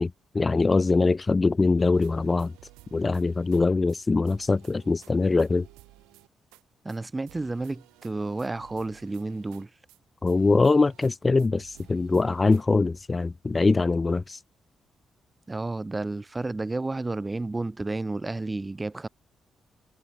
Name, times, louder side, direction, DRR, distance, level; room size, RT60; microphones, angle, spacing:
voice 1, 0.0-2.5 2.9-5.7 10.2-14.4, left 3 dB, 35° left, 0.4 m, -23 dB
sound 1, 1.9-3.6 3.9-4.0 4.3-6.6 6.9-7.0 7.3-10.0 10.3-11.1 11.4-12.6, right 23 dB, 85° right, 1.2 m, -55 dB
voice 2, 6.8-9.7 15.5-19.1, right 2 dB, 25° right, 2.0 m, -31 dB
hypercardioid pair, 45°, 0 cm